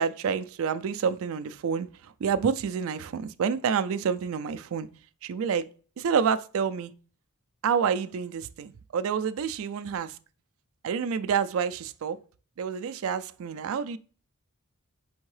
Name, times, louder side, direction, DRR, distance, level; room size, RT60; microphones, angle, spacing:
voice 1, 0.0-1.9 2.2-4.9 5.2-5.7 6.0-6.9 7.6-10.1 10.8-12.2 12.6-14.0, right 6 dB, 65° right, 0.3 m, -28 dB
4.5 x 3.5 x 3.2 m
head